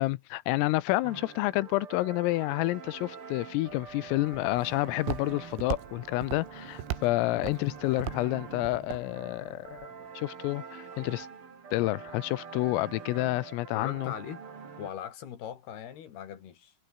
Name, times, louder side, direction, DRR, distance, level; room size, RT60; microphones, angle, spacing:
voice 1, 0.0-9.8 10.2-11.3 11.7-14.1, left 20 dB, 85° left, 3.5 m, -29 dB
sound 1, 1.0-14.9, right 5 dB, 35° right, 2.8 m, -45 dB
Walk footsteps, 3.7-9.9, right 13 dB, 85° right, 4.5 m, -40 dB
sound 2, 4.8-10.2, right 5 dB, 70° right, 10.5 m, -62 dB
voice 2, 13.7-14.4 14.8-16.7, left 9 dB, 55° left, 4.3 m, -40 dB
omnidirectional pair, 5.9 m